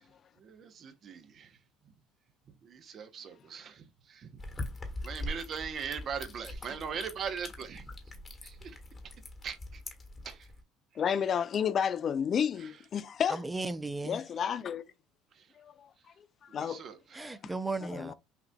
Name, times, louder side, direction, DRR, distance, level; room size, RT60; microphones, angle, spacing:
voice 1, 0.4-1.6 2.6-4.3 5.0-7.9 8.4-8.8 9.4-9.8 10.2-10.5 12.6-12.7 15.3-15.5 16.5-17.3, right 6 dB, 50° right, 0.8 m, -40 dB
sound 1, 4.4-10.6, left 1 dB, 30° left, 1.3 m, -42 dB
voice 2, 11.0-13.4 14.0-14.8 15.6-15.9 16.5-16.8 17.2-17.3 17.9-18.1, left 8 dB, 45° left, 0.3 m, -31 dB
voice 3, 13.3-14.2 17.1-18.1, right 3 dB, 15° right, 0.5 m, -35 dB
5.8 x 2.6 x 2.2 m
hypercardioid pair, 75°, 0 cm